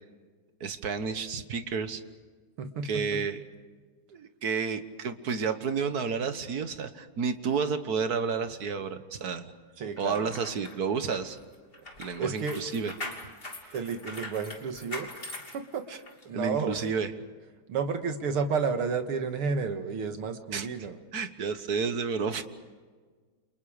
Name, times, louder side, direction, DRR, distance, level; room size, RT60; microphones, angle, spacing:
voice 1, 0.6-2.0 2.8-3.4 4.1-9.5 10.0-11.4 12.0-12.9 13.6-13.7 15.9-16.0 16.3-17.1 20.5-20.7 21.1-22.4, right 5 dB, 50° right, 10 dB, 1.6 m, -31 dB
voice 2, 2.6-3.2 9.8-10.3 12.2-12.7 13.7-15.1 15.5-15.8 16.3-16.8 17.7-21.0, right 5 dB, 85° right, 7 dB, 2.5 m, -31 dB
sound 1, 10.0-16.2 16.7-16.9, left 2 dB, 25° left, 3.1 m, -42 dB
29.5 x 28.0 x 5.1 m, 1.5 s
omnidirectional pair, 2.3 m